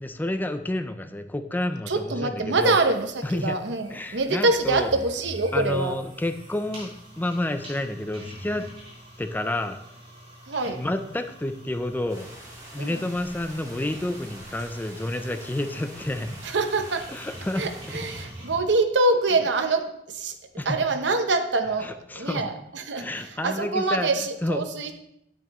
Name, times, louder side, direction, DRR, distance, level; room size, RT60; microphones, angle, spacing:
voice 1, 0.0-2.8 3.2-3.6 3.9-4.9 5.5-8.7 9.2-9.8 10.7-12.3 12.7-16.3 17.1-18.1 20.6-20.8 21.8-22.5 23.0-24.1 24.4-24.6, left 1 dB, 10° left, 9 dB, 0.4 m, -30 dB
voice 2, 1.9-5.9 10.5-10.8 12.8-12.9 16.4-17.0 17.6-20.3 20.6-24.9, right 3 dB, 70° right, 7 dB, 0.8 m, -25 dB
sound 1, 2.6-18.6, equal, 35° right, 3.8 m, -45 dB
sound 2, 12.1-18.2, right 1 dB, 20° right, 2.4 m, -45 dB
9.0 x 8.7 x 3.0 m, 0.78 s
head